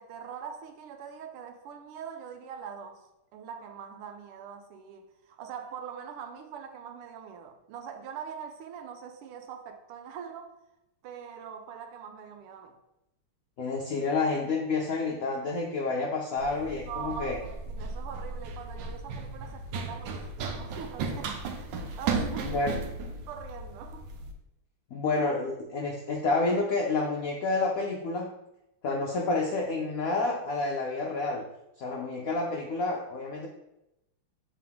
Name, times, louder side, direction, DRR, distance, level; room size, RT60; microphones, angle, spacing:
voice 1, 0.0-3.0 3.3-10.5 11.0-12.7 16.8-20.2 20.5-22.7 23.1-24.1, right 7 dB, 85° right, 1.6 m, -43 dB
voice 2, 13.6-17.4 22.4-22.8 24.9-28.3 28.8-31.4 31.8-33.5, left 3 dB, 80° left, 0.7 m, -29 dB
Run, 16.4-24.3, right 4 dB, 65° right, 1.3 m, -35 dB
7.6 x 3.8 x 3.5 m
omnidirectional pair, 2.4 m